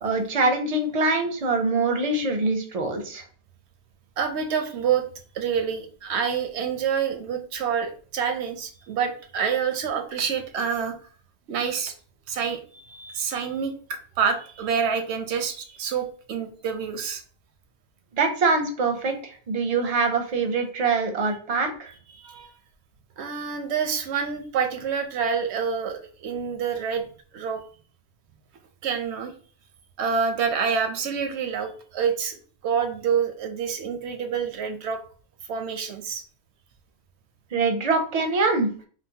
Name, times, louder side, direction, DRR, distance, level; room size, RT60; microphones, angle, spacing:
voice 1, 0.0-3.2 18.2-21.9 37.5-38.9, right 3 dB, 45° right, 5 dB, 0.5 m, -24 dB
voice 2, 4.2-5.0 5.3-11.0 11.5-11.9 12.3-17.2 22.1-22.5 23.2-27.1 27.3-27.6 28.8-29.3 30.0-35.0 35.5-36.2, right 6 dB, 85° right, 6 dB, 0.9 m, -27 dB
3.8 x 2.0 x 2.7 m, 0.43 s
omnidirectional pair, 1.1 m